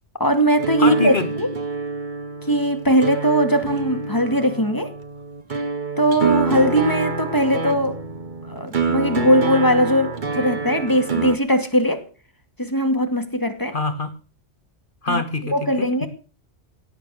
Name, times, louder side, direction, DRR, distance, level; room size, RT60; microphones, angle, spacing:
voice 1, 0.2-1.5 2.5-4.9 6.0-8.0 8.5-12.0 12.6-13.8 15.1-15.2 15.5-16.1, equal, 15° left, 6 dB, 2.3 m, -20 dB
sound 1, 0.6-11.4, right 4 dB, 45° right, 1.4 m, -27 dB
voice 2, 0.8-1.3 13.7-14.1 15.0-16.1, left 3 dB, 45° left, 9 dB, 1.8 m, -25 dB
17.0 x 8.8 x 6.6 m, 0.37 s
omnidirectional pair, 1.2 m